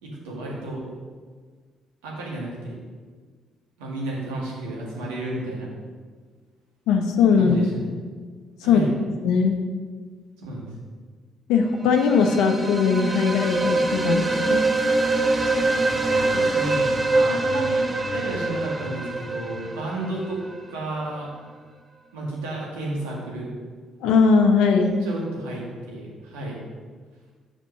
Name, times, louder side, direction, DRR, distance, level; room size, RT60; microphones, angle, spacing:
voice 1, 0.0-0.9 2.0-2.8 3.8-5.7 7.4-7.9 8.6-8.9 10.4-10.7 16.1-20.4 20.7-21.3 22.1-23.5 24.8-26.6, right 2 dB, 80° right, -4 dB, 2.0 m, -32 dB
voice 2, 6.9-7.6 8.7-8.8 9.2-9.6 11.5-14.6 24.0-25.0, left 5 dB, 70° left, 5 dB, 0.8 m, -19 dB
sound 1, 11.8-20.6, right 2 dB, 25° right, 1.0 m, -24 dB
5.3 x 5.3 x 6.3 m, 1.5 s
hypercardioid pair, 45°, 0 cm